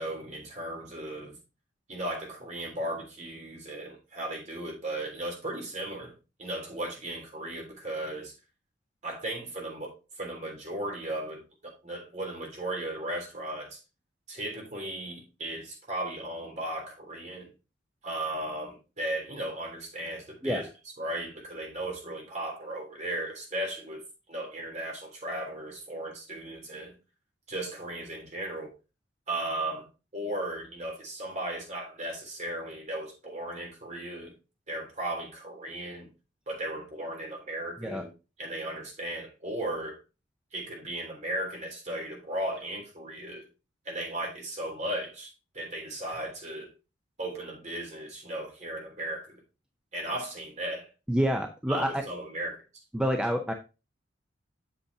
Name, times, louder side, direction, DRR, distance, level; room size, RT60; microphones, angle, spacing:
voice 1, 0.0-1.4 1.9-6.1 6.4-8.3 9.0-13.8 14.3-17.5 18.0-20.7 21.0-24.0 24.3-26.9 27.5-28.7 29.3-29.9 30.1-34.3 34.7-36.1 36.5-38.1 38.4-40.0 40.5-43.5 43.8-46.7 47.2-49.4 49.9-50.9 51.7-52.6, right 1 dB, 40° right, 3.3 m, -36 dB
voice 2, 51.1-52.0 52.9-53.5, equal, 5° right, 0.6 m, -27 dB
7.9 x 7.0 x 2.8 m
head